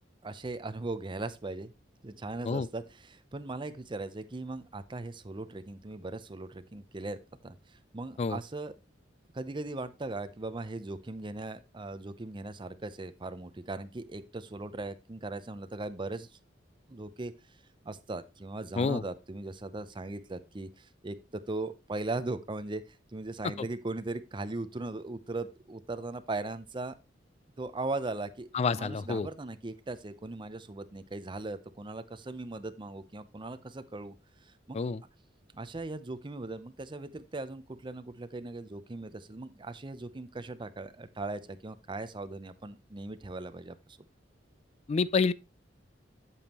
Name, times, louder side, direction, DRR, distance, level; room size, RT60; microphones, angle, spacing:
voice 1, 0.2-1.7 2.0-8.7 9.3-16.3 16.9-17.3 17.8-26.9 27.6-28.5 28.7-34.1 34.4-34.8 35.5-44.0, right 2 dB, 25° right, 0.6 m, -39 dB
voice 2, 28.5-29.3 34.7-35.0 44.9-45.3, left 4 dB, 35° left, 0.3 m, -28 dB
8.4 x 7.0 x 2.9 m
head